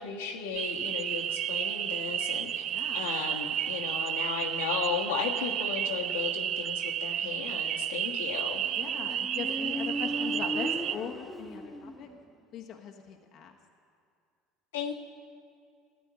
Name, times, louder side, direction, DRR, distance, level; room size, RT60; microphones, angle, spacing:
voice 1, 0.0-2.6 2.9-8.6 14.7-14.9, left 7 dB, 80° left, 0 dB, 1.4 m, -35 dB
sound 1, 0.5-11.0, right 10 dB, 50° right, 0.4 m, -32 dB
voice 2, 2.7-3.0 8.8-12.1 12.5-13.5, left 8 dB, 55° left, 2 dB, 1.1 m, -40 dB
Motorcycle, 8.6-12.3, equal, 5° right, 1.6 m, -37 dB
13.5 x 9.1 x 9.5 m, 2.3 s
hypercardioid pair, 70°, 0 cm